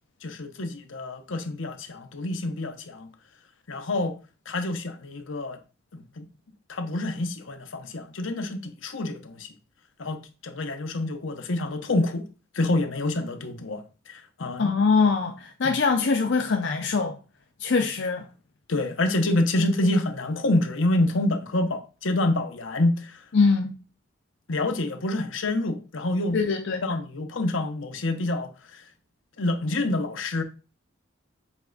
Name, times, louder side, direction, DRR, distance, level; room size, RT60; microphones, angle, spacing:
voice 1, 0.2-3.1 3.7-4.2 4.5-5.6 5.9-6.3 6.7-9.5 10.0-12.3 12.5-14.7 15.6-15.8 18.7-23.2 24.5-26.4 26.8-28.8 29.4-30.4, left 2 dB, 85° left, 0.9 m, -27 dB
voice 2, 14.6-17.2 17.6-18.2 23.3-23.7 26.3-26.9, left 4 dB, 65° left, 0.6 m, -23 dB
7.3 x 3.3 x 3.9 m
head